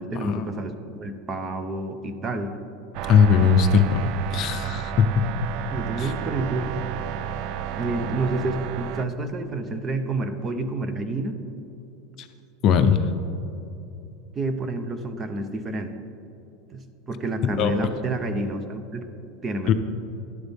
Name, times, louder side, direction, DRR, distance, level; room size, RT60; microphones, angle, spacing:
voice 1, 0.0-2.6 5.7-6.8 7.8-11.4 14.3-15.9 16.7-19.1 19.4-19.7, right 2 dB, 20° right, 8 dB, 0.7 m, -29 dB
sound 1, 2.9-9.1, right 9 dB, 50° right, 0.4 m, -32 dB
voice 2, 3.1-5.3 6.0-6.1 12.2-12.3 12.6-13.0 17.6-17.7 19.7-19.8, left 6 dB, 40° left, 8 dB, 0.6 m, -19 dB
12.0 x 11.0 x 3.6 m, 2.8 s
supercardioid pair, 145°, 0 cm